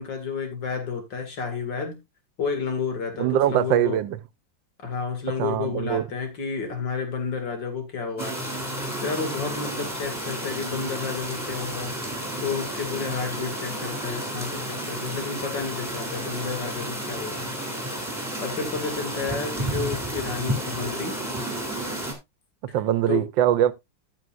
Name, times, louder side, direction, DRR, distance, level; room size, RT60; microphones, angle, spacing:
voice 1, 0.0-2.0 2.4-4.0 4.8-8.4 9.0-11.9 12.4-17.5 18.4-21.2 23.1-23.2, left 5 dB, 70° left, 2.8 m, -31 dB
voice 2, 3.2-4.2 5.4-6.1 22.7-23.7, right 11 dB, 85° right, 1.4 m, -22 dB
sound 1, 8.2-22.1, right 1 dB, 10° right, 3.1 m, -31 dB
14.0 x 6.9 x 2.5 m
omnidirectional pair, 2.0 m